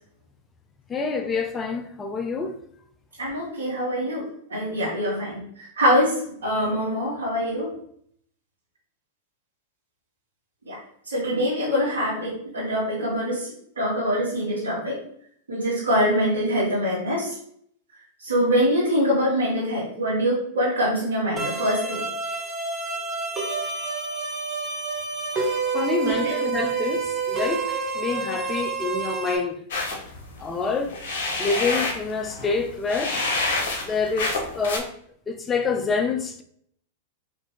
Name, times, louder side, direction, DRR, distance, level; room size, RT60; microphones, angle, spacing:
voice 1, 0.9-2.6 25.7-29.6 30.4-31.0 31.4-33.2 33.8-34.9 35.3-36.4, left 4 dB, 20° left, 0.5 m, -27 dB
voice 2, 3.2-7.7 10.7-10.8 11.1-13.5 13.8-15.0 15.5-17.3 18.2-22.0 26.0-26.4, equal, 80° right, 1.5 m, -24 dB
sound 1, 21.4-29.4, right 4 dB, 20° right, 1.2 m, -28 dB
sound 2, 29.7-34.8, left 2 dB, 65° left, 1.0 m, -28 dB
4.2 x 2.8 x 3.3 m
hypercardioid pair, 100°, 0 cm